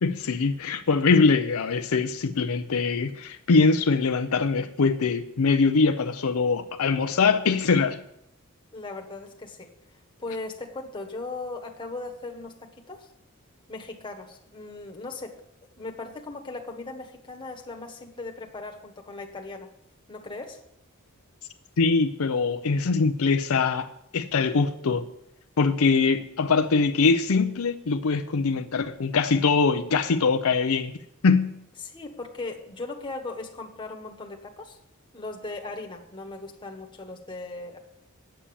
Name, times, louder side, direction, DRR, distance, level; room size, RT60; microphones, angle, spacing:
voice 1, 0.0-8.0 21.8-25.1 25.6-31.0 31.2-31.6, left 4 dB, 70° left, 0.6 m, -23 dB
voice 2, 8.7-9.7 10.2-13.1 13.7-15.4 15.8-19.7 20.1-20.6 31.8-34.8 35.1-37.8, left 3 dB, 20° left, 1.3 m, -38 dB
8.8 x 8.6 x 7.0 m
head